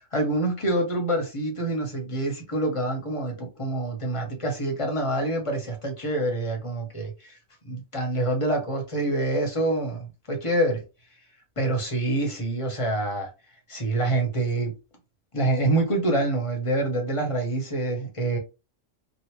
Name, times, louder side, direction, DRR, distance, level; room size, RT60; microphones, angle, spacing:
voice 1, 0.1-7.3 7.6-10.8 11.6-13.3 13.7-14.7 15.3-18.4, right 2 dB, 30° left, 0.8 m, -26 dB
3.1 x 2.5 x 2.9 m
omnidirectional pair, 1.3 m